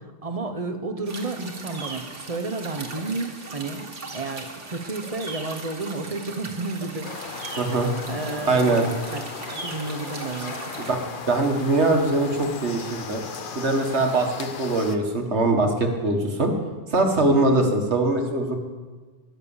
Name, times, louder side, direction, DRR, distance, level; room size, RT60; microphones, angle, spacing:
voice 1, 0.0-3.9 4.1-7.6 8.1-9.2 9.5-10.6 17.5-17.6, right 3 dB, 30° right, 6 dB, 1.2 m, -32 dB
sound 1, 1.1-11.0, right 3 dB, 85° right, 2.1 m, -39 dB
sound 2, 7.0-15.0, left 5 dB, 50° left, 1.0 m, -37 dB
voice 2, 7.6-7.9 8.5-8.9 11.3-13.2 13.6-16.5 16.9-18.5, right 2 dB, 70° right, 3 dB, 2.0 m, -22 dB
21.0 x 7.4 x 7.2 m, 1.4 s
omnidirectional pair, 1.2 m